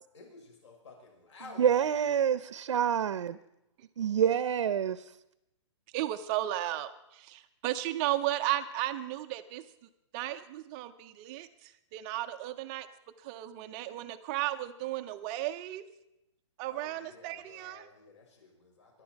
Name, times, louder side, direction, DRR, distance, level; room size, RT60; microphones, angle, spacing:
voice 1, 0.1-2.1 16.7-19.0, left 3 dB, 65° left, 1 dB, 6.3 m, -53 dB
voice 2, 1.6-3.4 4.0-5.1, right 8 dB, 75° right, 15 dB, 0.7 m, -27 dB
voice 3, 5.9-9.6 10.1-12.9 13.2-15.9 16.6-17.9, right 14 dB, 15° right, 8 dB, 0.5 m, -34 dB
23.5 x 11.0 x 4.6 m, 0.87 s
hypercardioid pair, 170°, 16 cm